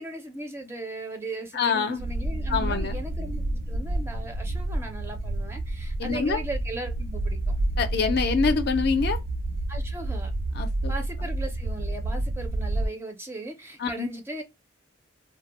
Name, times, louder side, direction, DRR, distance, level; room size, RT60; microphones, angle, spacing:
voice 1, 0.0-7.6 9.7-10.3 10.9-14.4, right 2 dB, 15° right, 0.5 m, -38 dB
voice 2, 1.5-2.0 2.5-3.0 6.0-6.4 7.8-9.2 10.5-10.9 13.8-14.1, left 5 dB, 55° left, 0.4 m, -25 dB
sound 1, 2.0-12.9, right 1 dB, 70° right, 0.4 m, -29 dB
2.2 x 2.0 x 2.9 m
head